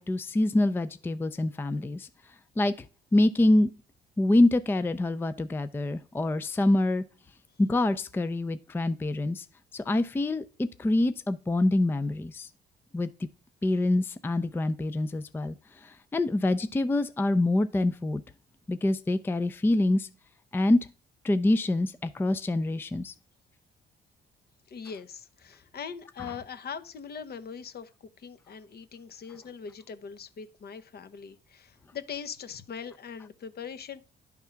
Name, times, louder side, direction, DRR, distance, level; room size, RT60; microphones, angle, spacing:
voice 1, 0.0-2.1 2.6-2.7 3.1-3.7 4.2-7.0 7.6-9.5 9.7-12.5 12.9-13.1 13.6-15.6 15.8-18.2 18.7-20.1 20.5-20.8 21.2-23.1, left 2 dB, 10° left, 0.4 m, -25 dB
voice 2, 24.7-27.9 28.2-34.0, left 6 dB, 50° left, 0.8 m, -41 dB
10.5 x 3.6 x 5.6 m
cardioid pair, 90°, 20 cm